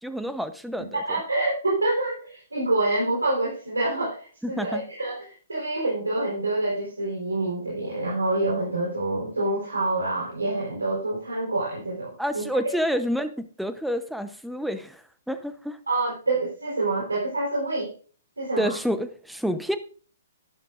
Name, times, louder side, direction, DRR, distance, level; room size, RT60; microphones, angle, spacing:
voice 1, 0.0-1.2 4.4-4.9 12.2-15.8 18.6-19.8, equal, ahead, 10 dB, 0.9 m, -29 dB
voice 2, 0.9-12.4 15.9-17.9 18.4-18.7, right 2 dB, 90° right, -4 dB, 4.0 m, -27 dB
12.0 x 11.5 x 2.6 m, 0.41 s
figure-of-eight pair, 125°, 0 cm